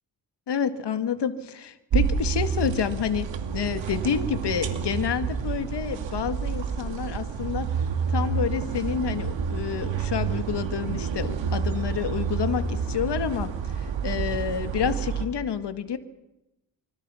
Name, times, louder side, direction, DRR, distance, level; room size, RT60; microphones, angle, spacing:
voice 1, 0.5-7.7 8.1-16.0, left 7 dB, 60° left, 10 dB, 2.0 m, -29 dB
sound 1, 1.9-15.3, right 6 dB, 70° right, 2.5 m, -29 dB
25.0 x 25.0 x 5.7 m, 0.93 s
cardioid pair, 95°, 46 cm